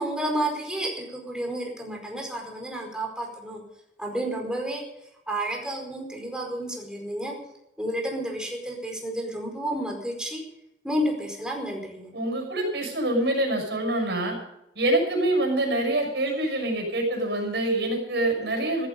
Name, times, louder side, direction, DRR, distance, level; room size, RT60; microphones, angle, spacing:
voice 1, 0.0-3.6 4.0-4.8 5.3-7.3 7.8-10.4 10.8-12.1, right 1 dB, 5° right, 1 dB, 4.8 m, -31 dB
voice 2, 12.1-14.4 14.7-18.9, right 1 dB, 75° right, 2 dB, 6.1 m, -25 dB
15.5 x 14.0 x 5.4 m, 0.84 s
head